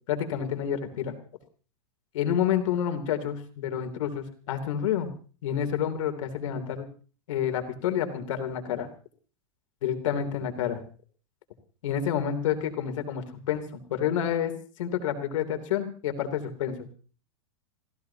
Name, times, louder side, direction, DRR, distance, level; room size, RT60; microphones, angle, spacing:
voice 1, 0.1-1.1 2.1-5.1 5.4-6.8 7.3-8.9 9.8-10.8 11.8-14.5 14.8-16.9, left 9 dB, 70° left, 6 dB, 3.2 m, -29 dB
28.0 x 15.5 x 2.9 m, 0.39 s
supercardioid pair, 160°, 17 cm